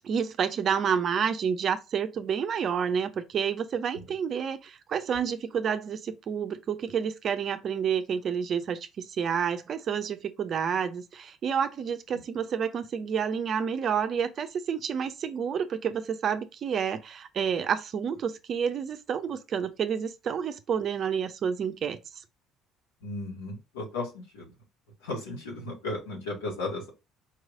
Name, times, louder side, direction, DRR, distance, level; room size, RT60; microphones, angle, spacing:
voice 1, 0.0-22.0, right 7 dB, 50° right, 0.6 m, -29 dB
voice 2, 23.0-24.5 25.0-26.9, left 2 dB, 80° left, 1.9 m, -35 dB
4.6 x 3.1 x 2.5 m
hypercardioid pair, 55°, 0 cm